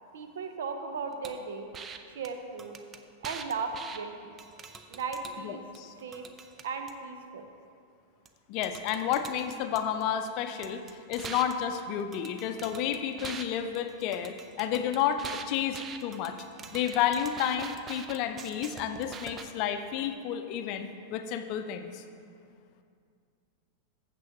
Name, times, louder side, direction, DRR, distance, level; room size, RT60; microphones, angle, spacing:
voice 1, 0.1-1.7 2.1-2.8 3.2-4.3 4.9-5.6 6.0-6.2 6.6-7.4, right 5 dB, 60° right, 6 dB, 0.8 m, -36 dB
sound 1, 1.2-1.4 1.7-2.0 2.2-2.3 2.6-4.0 4.4-5.4 5.7-6.9 8.3-8.4 8.6-10.3 10.6-13.4 13.7-19.4, right 6 dB, 25° right, 0.5 m, -44 dB
voice 2, 5.4-5.9 8.5-16.3 16.7-22.0, left 9 dB, 45° left, 8 dB, 0.5 m, -31 dB
15.0 x 6.9 x 2.9 m, 2.3 s
figure-of-eight pair, 90°, 0 cm